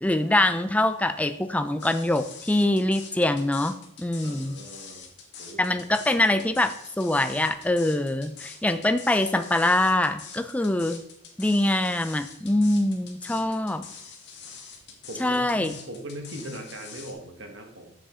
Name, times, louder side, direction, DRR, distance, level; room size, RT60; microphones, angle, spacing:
voice 1, 0.0-4.6 5.6-11.0 11.4-13.8 15.2-15.7, left 1 dB, 5° left, 9 dB, 0.4 m, -24 dB
sound 1, 1.8-17.1, left 6 dB, 55° left, 1.5 m, -44 dB
voice 2, 4.2-5.0 5.4-5.9 13.3-13.5 14.9-17.9, right 1 dB, 65° right, 3 dB, 1.4 m, -40 dB
7.3 x 7.2 x 3.7 m, 0.75 s
head